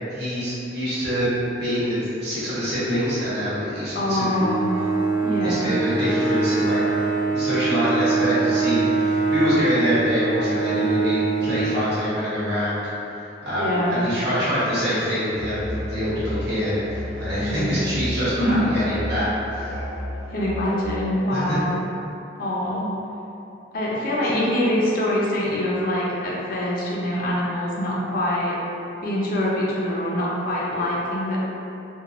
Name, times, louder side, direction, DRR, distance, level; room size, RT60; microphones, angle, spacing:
voice 1, 0.1-1.3 1.6-4.2 5.4-6.8 7.3-12.9 13.1-19.7 21.3-21.6, equal, 60° right, -12 dB, 1.1 m, -25 dB
voice 2, 3.9-4.7 5.2-5.7 13.6-14.1 17.3-17.7 18.4-18.6 20.3-21.8 22.4-22.9 23.7-28.6 29.0-31.4, left 1 dB, 50° left, -5 dB, 0.5 m, -24 dB
Bowed string instrument, 4.3-12.5, right 3 dB, 90° right, 1.0 m, -23 dB
Musical instrument, 15.3-20.9, left 1 dB, 35° right, 0.4 m, -32 dB
2.9 x 2.2 x 2.5 m, 2.8 s
head